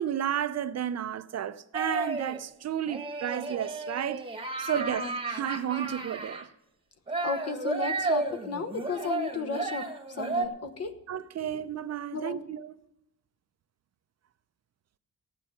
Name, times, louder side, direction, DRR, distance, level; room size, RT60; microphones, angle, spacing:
voice 1, 0.0-4.3 4.6-6.5 11.1-12.7, right 10 dB, 55° right, 0.5 m, -32 dB
sound 1, 1.7-2.4 2.9-6.4 7.1-10.5, right 3 dB, 15° right, 1.1 m, -33 dB
voice 2, 7.2-9.8 10.2-10.9 11.4-11.5 12.1-12.4, left 4 dB, 50° left, 1.1 m, -34 dB
14.5 x 9.3 x 5.7 m
cardioid pair, 115°, 32 cm